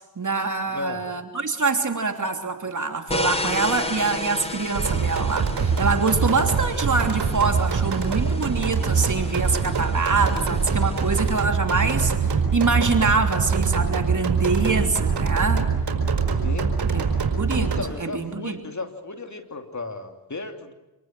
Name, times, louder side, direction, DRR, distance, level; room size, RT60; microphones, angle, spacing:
voice 1, 0.2-15.7 16.9-17.0 17.4-18.6, right 4 dB, 50° right, 5 dB, 3.1 m, -25 dB
voice 2, 0.7-1.0 16.4-16.8 17.6-20.7, left 3 dB, 45° left, 5 dB, 3.1 m, -34 dB
sound 1, 3.1-11.5, left 1 dB, 15° left, 3.2 m, -34 dB
sound 2, 4.8-17.8, right 5 dB, 80° right, 4.8 m, -23 dB
27.0 x 19.0 x 7.7 m, 1.1 s
cardioid pair, 45°, 40 cm